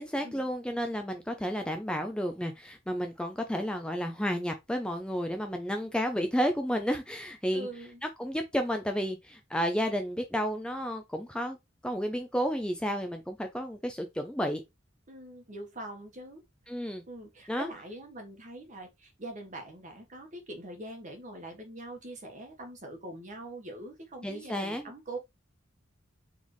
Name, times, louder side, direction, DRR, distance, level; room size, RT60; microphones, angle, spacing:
voice 1, 0.0-7.7 8.0-11.6 11.8-14.6 16.7-17.0 17.5-17.7 24.2-24.8, equal, 5° left, 0.5 m, -31 dB
voice 2, 7.5-8.0 15.1-16.4 17.1-25.2, right 1 dB, 40° right, 1.2 m, -43 dB
4.3 x 3.5 x 3.0 m
head